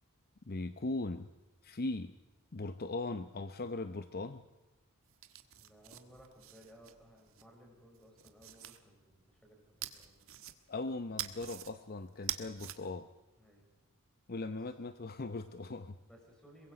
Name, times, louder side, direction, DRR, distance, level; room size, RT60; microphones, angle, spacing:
voice 1, 0.5-1.3 1.6-2.1 2.5-4.5 10.7-13.1 14.3-16.0, left 2 dB, 45° left, 11 dB, 0.7 m, -39 dB
sound 1, 5.1-7.4 7.9-8.8 9.8-10.8 11.2-11.7 12.1-12.8, right 11 dB, 65° right, 1.5 m, -44 dB
voice 2, 5.5-10.3 13.4-13.7 16.0-16.7, equal, 5° left, -1 dB, 6.8 m, -60 dB
23.5 x 21.5 x 5.1 m, 1.1 s
head